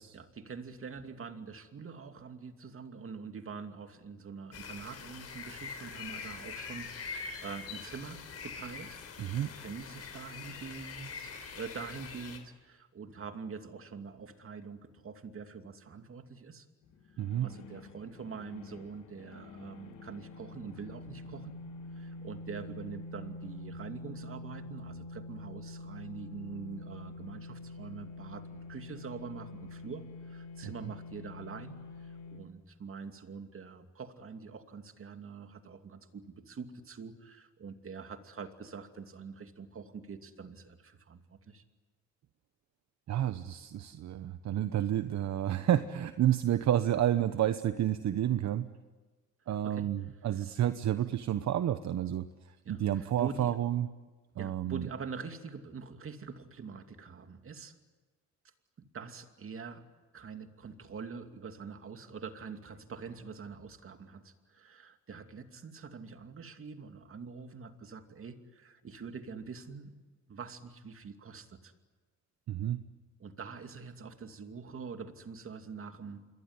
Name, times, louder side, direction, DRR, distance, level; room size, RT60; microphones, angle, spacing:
voice 1, 0.1-16.7 17.1-21.5 21.9-41.6 49.6-49.9 52.6-53.6 54.4-57.8 58.8-59.8 60.1-69.9 70.3-71.7 73.2-76.2, right 5 dB, 45° right, 7 dB, 2.6 m, -45 dB
sound 1, 4.5-12.4, left 5 dB, 55° left, 4.5 m, -44 dB
voice 2, 9.2-9.5 17.2-17.5 30.6-30.9 43.1-48.7 49.5-53.9 54.4-54.9 72.5-72.8, right 11 dB, 65° right, 11 dB, 1.1 m, -30 dB
sound 2, 16.8-32.4, left 2 dB, 85° left, 3.5 m, -46 dB
27.0 x 22.0 x 9.7 m, 1.3 s
cardioid pair, 90°, 30 cm